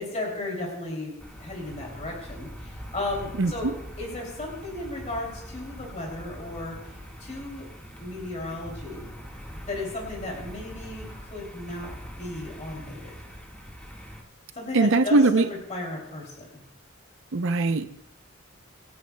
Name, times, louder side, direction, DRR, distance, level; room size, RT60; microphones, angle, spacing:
voice 1, 0.0-3.7 4.0-7.6 8.0-9.1 9.5-11.9 12.2-13.1 14.5-16.6, left 2 dB, 35° left, -2 dB, 2.9 m, -35 dB
sound 1, 1.2-14.2, equal, 5° left, 1.7 m, -43 dB
voice 2, 3.4-3.7 14.7-15.5 17.3-17.9, right 3 dB, 65° right, 9 dB, 0.6 m, -21 dB
27.0 x 9.4 x 2.3 m, 0.86 s
head